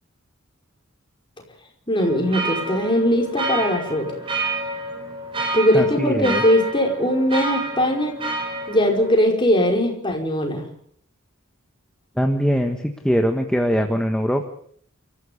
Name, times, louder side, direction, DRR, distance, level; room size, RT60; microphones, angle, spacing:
voice 1, 1.9-4.1 5.5-8.2 8.7-10.6, equal, 20° left, 1 dB, 5.2 m, -20 dB
sound 1, 2.0-9.2, right 2 dB, 25° right, 4.1 m, -29 dB
voice 2, 5.7-6.4 12.2-14.4, equal, 5° left, 4 dB, 1.4 m, -22 dB
28.0 x 15.0 x 7.1 m, 0.62 s
head